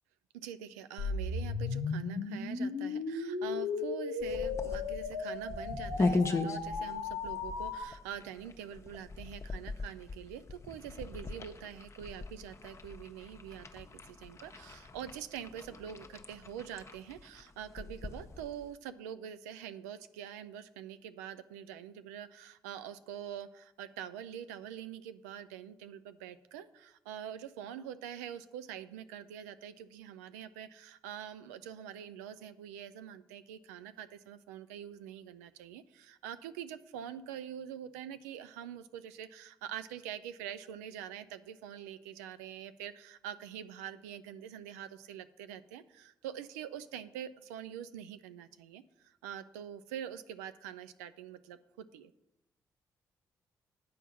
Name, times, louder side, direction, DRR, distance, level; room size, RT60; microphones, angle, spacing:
voice 1, 0.4-52.1, right 9 dB, 85° right, 13 dB, 0.4 m, -45 dB
sound 1, 1.0-7.8, left 4 dB, 90° left, 0.8 m, -36 dB
sound 2, 4.2-18.7, left 3 dB, 35° left, 0.9 m, -39 dB
8.5 x 4.7 x 6.8 m, 0.92 s
hypercardioid pair, 40°, 8 cm